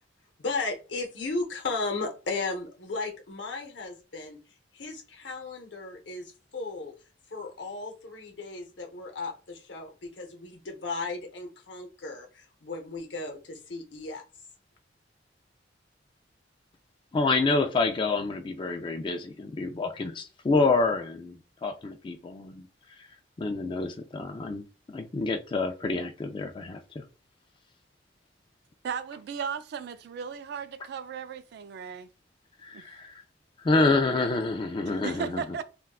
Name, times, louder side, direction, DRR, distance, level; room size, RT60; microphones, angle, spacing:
voice 1, 0.4-4.4 4.7-6.9 7.3-14.2, left 3 dB, 70° left, 0.8 m, -35 dB
voice 2, 17.1-22.7 23.4-27.0 32.6-33.1 33.6-35.4, left 3 dB, 25° left, 0.3 m, -28 dB
voice 3, 28.8-32.1 32.7-32.8 34.9-35.6, right 7 dB, 60° right, 0.3 m, -36 dB
3.5 x 2.2 x 2.3 m
head